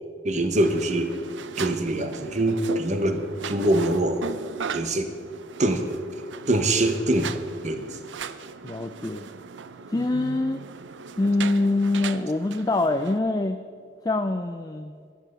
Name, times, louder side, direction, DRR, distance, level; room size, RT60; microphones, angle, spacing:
voice 1, 0.2-1.1 1.6-4.3 4.7-5.1 5.6-5.8 6.5-7.3 7.6-8.0, right 1 dB, 40° right, 7 dB, 1.1 m, -24 dB
sound 1, 0.5-13.2, right 5 dB, 90° right, 0.6 m, -38 dB
voice 2, 8.6-9.3 9.9-10.6 11.2-13.6 14.0-14.9, left 2 dB, 20° left, 8 dB, 0.4 m, -24 dB
11.0 x 10.5 x 6.7 m, 2.2 s
head